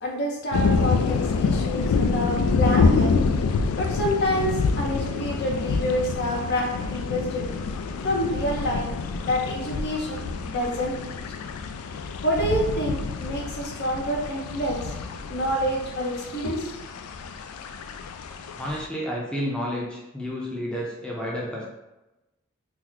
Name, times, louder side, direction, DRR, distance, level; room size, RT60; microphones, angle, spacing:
voice 1, 0.0-3.1 3.8-7.5 8.0-8.9 9.2-11.1 12.2-14.8 15.3-16.7, equal, 50° left, -1 dB, 0.6 m, -27 dB
sound 1, 0.5-18.9, left 4 dB, 85° left, 0.3 m, -27 dB
voice 2, 18.6-21.7, equal, 5° left, -4 dB, 0.5 m, -30 dB
3.0 x 2.1 x 3.8 m, 0.98 s
head